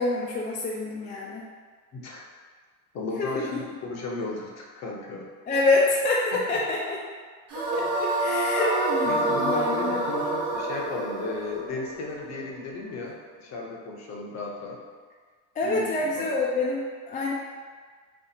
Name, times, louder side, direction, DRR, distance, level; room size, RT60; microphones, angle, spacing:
voice 1, 0.0-1.4 3.2-3.6 5.5-7.0 7.7-10.0 15.6-17.3, left 2 dB, 20° left, -3 dB, 0.3 m, -26 dB
voice 2, 1.9-2.2 2.9-5.3 6.3-6.6 7.8-7.9 9.0-14.8 15.6-16.3, left 3 dB, 40° left, -1 dB, 0.8 m, -35 dB
sound 1, 7.5-12.7, right 2 dB, 85° right, 1.2 m, -27 dB
4.2 x 2.4 x 2.8 m, 1.5 s
supercardioid pair, 105°, 40 cm